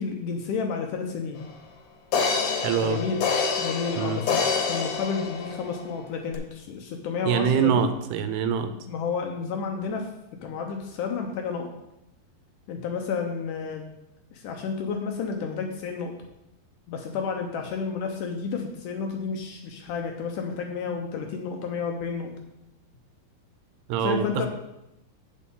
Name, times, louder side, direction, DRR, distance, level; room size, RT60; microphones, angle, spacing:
voice 1, 0.0-1.4 2.8-3.2 3.6-4.4 4.7-7.9 8.9-10.1 10.4-11.7 12.7-13.9 14.3-16.1 16.9-22.3 24.0-24.5, left 5 dB, 80° left, 2 dB, 1.8 m, -31 dB
sound 1, 1.4-1.5 2.1-5.9 6.3-6.4, left 5 dB, 65° left, 2.2 m, -27 dB
voice 2, 2.6-3.0 4.0-4.2 7.2-8.7 23.9-24.5, right 8 dB, 85° right, 9 dB, 2.6 m, -24 dB
8.3 x 8.2 x 3.8 m, 0.87 s
omnidirectional pair, 4.7 m